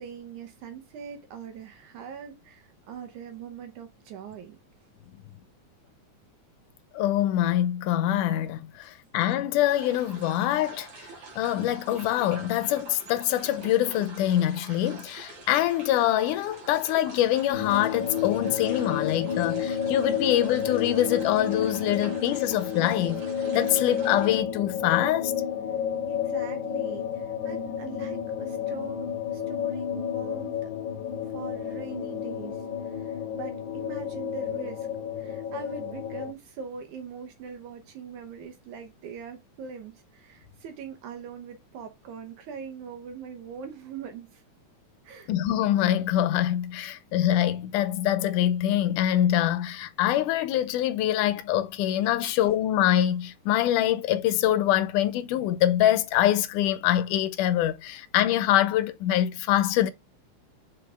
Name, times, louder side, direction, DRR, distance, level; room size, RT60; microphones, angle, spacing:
voice 1, 0.0-4.6 26.1-30.7 31.3-34.9 35.2-44.4 45.0-45.3 52.2-52.4, right 6 dB, 75° right, 2.3 m, -42 dB
voice 2, 6.9-11.1 11.4-23.2 23.5-25.3 45.3-59.9, left 12 dB, 90° left, 2.2 m, -24 dB
sound 1, 9.7-24.4, right 3 dB, 50° right, 2.6 m, -46 dB
sound 2, 17.5-36.3, left 8 dB, 60° left, 1.3 m, -31 dB
5.8 x 4.9 x 3.4 m
omnidirectional pair, 3.6 m